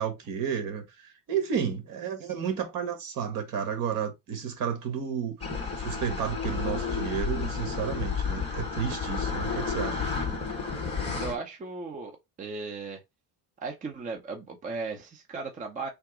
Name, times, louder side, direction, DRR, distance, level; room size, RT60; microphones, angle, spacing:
voice 1, 0.0-5.5 5.8-10.0, right 7 dB, 60° right, 1.5 m, -32 dB
sound 1, 5.4-11.3, left 5 dB, 15° left, 1.2 m, -31 dB
voice 2, 11.2-13.0 13.6-15.9, right 4 dB, 20° right, 0.6 m, -36 dB
3.5 x 2.9 x 4.8 m
cardioid pair, 175°, 38 cm